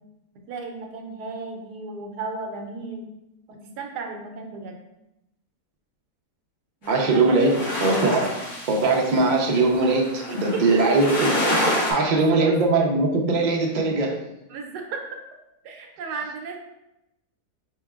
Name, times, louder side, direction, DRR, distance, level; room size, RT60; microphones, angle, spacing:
voice 1, 0.5-3.0 3.5-4.8 6.8-7.5 10.3-10.6 11.8-12.5 14.5-15.0 15.6-16.6, right 4 dB, 85° right, 3 dB, 1.2 m, -35 dB
sound 1, 6.8-11.9, left 1 dB, 70° left, 2.0 m, -27 dB
voice 2, 6.9-8.3 8.7-11.3 11.6-14.1, right 3 dB, 55° right, -1 dB, 0.5 m, -21 dB
4.5 x 4.1 x 2.3 m, 0.90 s
omnidirectional pair, 1.7 m